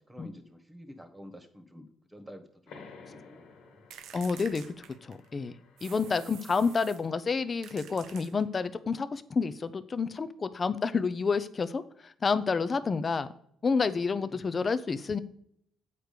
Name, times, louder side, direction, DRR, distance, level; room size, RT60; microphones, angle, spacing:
voice 1, 0.0-3.8 5.9-6.4 12.8-12.9 14.2-14.6, equal, 10° right, 7 dB, 1.4 m, -50 dB
sound 1, 2.7-7.9, left 5 dB, 85° left, 1.9 m, -55 dB
sound 2, 3.9-5.3 5.8-7.1 7.6-8.7, right 9 dB, 80° right, 0.6 m, -49 dB
voice 2, 4.1-4.6 5.0-5.5 5.8-13.3 13.6-15.2, left 5 dB, 35° left, 12 dB, 0.6 m, -29 dB
8.4 x 4.7 x 6.7 m, 0.69 s
cardioid pair, 90°, 0 cm